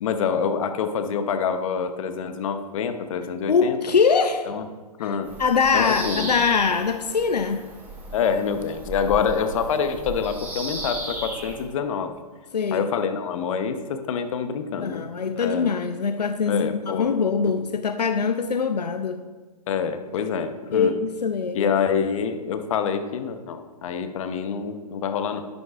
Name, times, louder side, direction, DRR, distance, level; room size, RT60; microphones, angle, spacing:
voice 1, 0.0-3.8 4.5-4.6 5.0-5.3 5.7-6.4 8.1-12.1 12.7-15.1 15.4-15.7 16.5-17.1 17.4-17.5 19.7-20.9 21.5-25.5, left 6 dB, 55° left, 8 dB, 0.9 m, -26 dB
voice 2, 3.5-4.6 5.0-7.6 12.5-12.9 14.7-19.2 20.7-21.7, left 5 dB, 90° left, 9 dB, 0.5 m, -23 dB
Bird vocalization bird call bird song, 5.2-11.7, right 2 dB, 10° right, 1.7 m, -35 dB
10.5 x 9.4 x 2.5 m, 1.4 s
hypercardioid pair, 125°, 20 cm